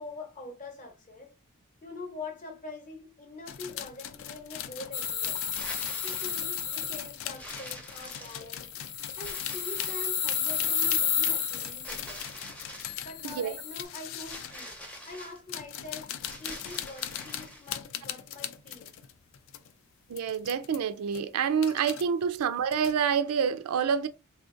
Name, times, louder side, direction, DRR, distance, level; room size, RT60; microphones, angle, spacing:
voice 1, 0.0-1.3 1.8-5.4 6.0-8.7 9.2-12.2 13.0-14.8 15.1-16.1 16.4-18.9, left 3 dB, 35° left, 0.8 m, -44 dB
sound 1, 3.5-14.7 15.3-19.7 20.1-20.8 21.1-22.0 22.4-23.1, left 10 dB, 60° left, 0.3 m, -41 dB
sound 2, 4.9-7.1 8.6-12.1 13.2-13.8, left 7 dB, 85° left, 0.7 m, -31 dB
sound 3, 5.5-6.5 7.4-8.6 9.2-10.2 11.8-13.0 14.2-15.4 16.2-17.7, equal, 5° left, 0.5 m, -44 dB
voice 2, 20.1-24.1, right 7 dB, 75° right, 0.4 m, -27 dB
3.4 x 2.5 x 2.5 m
head